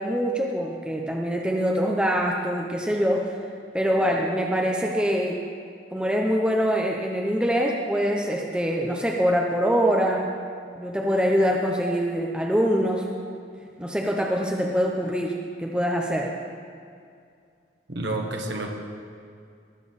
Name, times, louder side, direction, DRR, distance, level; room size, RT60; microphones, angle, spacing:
voice 1, 0.0-3.3 3.7-5.4 5.9-10.3 10.8-13.1 13.8-16.3, equal, 5° right, 0 dB, 0.7 m, -24 dB
voice 2, 17.9-18.7, right 2 dB, 75° right, 1 dB, 1.4 m, -29 dB
18.5 x 6.9 x 4.2 m, 2.3 s
head